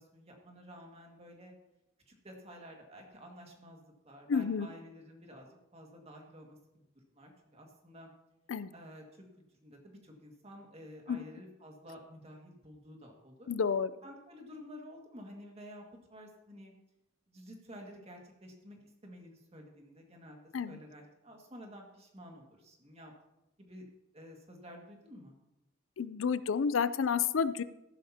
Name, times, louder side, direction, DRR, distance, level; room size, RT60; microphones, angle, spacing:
voice 1, 0.0-1.5 2.1-5.5 5.7-6.6 7.1-8.1 8.7-9.0 9.6-13.5 14.0-16.7 17.3-20.4 20.6-23.1 23.6-23.9 24.1-25.3, equal, 35° right, 1 dB, 1.9 m, -51 dB
voice 2, 4.3-4.7 8.5-8.7 11.1-11.3 13.5-13.9 20.5-20.8 26.0-27.6, left 6 dB, 85° left, 15 dB, 0.5 m, -30 dB
14.0 x 11.5 x 2.8 m, 0.91 s
head